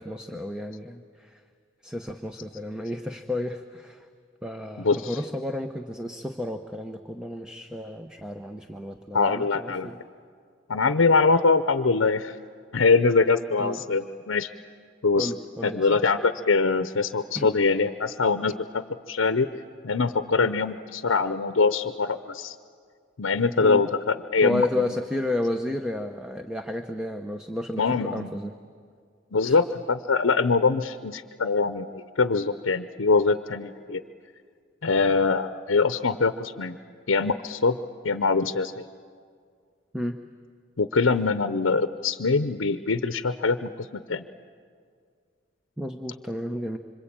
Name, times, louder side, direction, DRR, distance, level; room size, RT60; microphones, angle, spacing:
voice 1, 0.0-1.4 1.8-4.1 4.4-10.0 13.6-13.8 15.2-16.0 17.3-17.5 23.6-23.8 24.4-28.5 29.4-29.6 39.9-40.2 45.8-46.8, left 1 dB, 5° right, 6 dB, 0.8 m, -32 dB
voice 2, 4.8-5.2 9.1-9.9 10.7-12.4 12.7-14.5 15.0-15.3 15.6-19.5 19.8-22.5 23.2-24.9 27.8-28.3 29.3-34.0 34.8-36.8 37.1-37.8 38.0-38.8 40.8-44.2, left 4 dB, 85° left, 11 dB, 0.7 m, -23 dB
26.5 x 26.0 x 8.8 m, 2.1 s
head